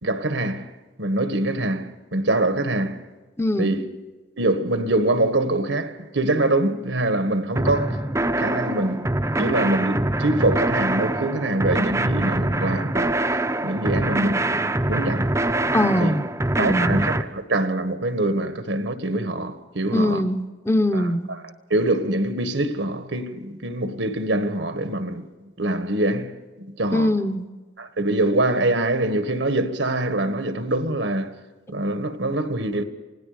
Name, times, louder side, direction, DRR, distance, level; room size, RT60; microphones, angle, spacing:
voice 1, 0.0-0.7 1.0-3.0 3.6-3.8 4.4-7.9 8.4-9.1 9.3-13.2 13.6-15.3 15.8-16.2 16.6-20.2 20.9-21.0 21.7-25.3 25.6-26.3 26.6-27.1 27.8-31.4 31.7-32.8, right 2 dB, 80° right, 1.6 m, -24 dB
voice 2, 3.4-3.8 15.7-16.2 16.6-17.0 19.9-21.3 26.9-27.5, left 1 dB, 15° left, 0.9 m, -22 dB
sound 1, 7.6-17.2, right 1 dB, 15° right, 0.7 m, -24 dB
28.5 x 17.5 x 5.2 m
head